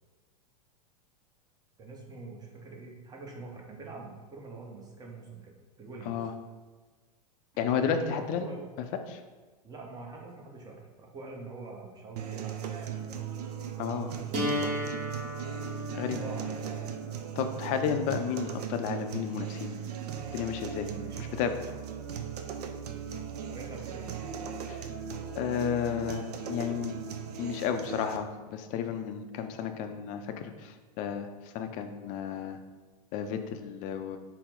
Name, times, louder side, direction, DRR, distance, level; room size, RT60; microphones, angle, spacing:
voice 1, 1.8-6.2 7.5-8.7 9.6-13.1 14.2-14.5 16.1-16.6 20.9-21.3 23.1-24.1, right 3 dB, 20° right, 0 dB, 0.7 m, -45 dB
voice 2, 7.6-8.4 9.1-9.2 13.8-14.1 15.9-16.2 17.4-19.8 20.3-20.9 21.2-21.6 24.7-24.8 25.4-27.0 27.4-31.3 31.5-32.6 33.1-34.2, left 7 dB, 40° left, 7 dB, 0.4 m, -32 dB
sound 1, 12.2-28.2, right 7 dB, 75° right, 0.4 m, -38 dB
sound 2, 14.3-20.3, left 1 dB, 40° right, 1.0 m, -37 dB
4.1 x 2.0 x 3.7 m, 1.3 s
hypercardioid pair, 105°, 20 cm